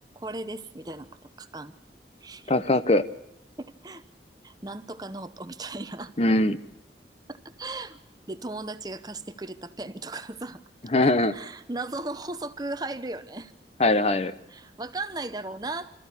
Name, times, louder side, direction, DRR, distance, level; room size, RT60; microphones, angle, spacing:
voice 1, 0.2-1.1 1.4-1.7 2.2-2.5 3.6-4.0 4.4-6.1 7.3-8.0 8.3-10.6 11.3-13.5 14.5-15.9, right 2 dB, 20° right, 12 dB, 0.7 m, -36 dB
voice 2, 2.5-3.0 6.2-6.6 10.8-11.4 13.8-14.3, left 2 dB, 35° left, 13 dB, 0.7 m, -21 dB
26.5 x 14.0 x 8.4 m, 0.82 s
head